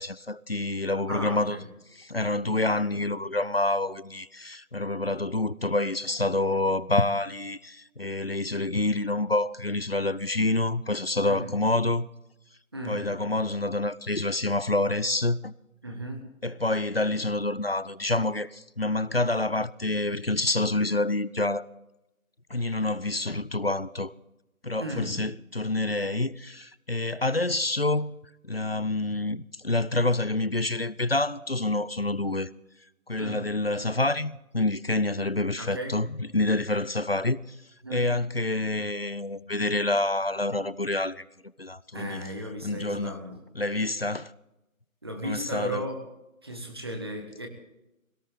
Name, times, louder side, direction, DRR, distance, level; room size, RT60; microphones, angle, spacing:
voice 1, 0.0-1.6 2.0-12.1 12.9-15.5 16.4-21.7 22.5-24.1 24.6-28.2 28.4-32.5 33.1-36.1 36.3-37.6 37.9-41.2 41.6-42.2 42.6-43.2 43.6-44.3 45.2-45.9, left 2 dB, 45° left, 0.5 m, -27 dB
voice 2, 1.1-1.6 11.2-11.5 12.7-13.2 15.8-16.2 24.8-25.2 33.2-33.5 35.6-36.0 37.8-38.0 41.9-43.4 45.0-46.0 46.4-47.5, right 1 dB, 20° right, 1.5 m, -35 dB
20.5 x 18.0 x 3.6 m
figure-of-eight pair, 175°, 42 cm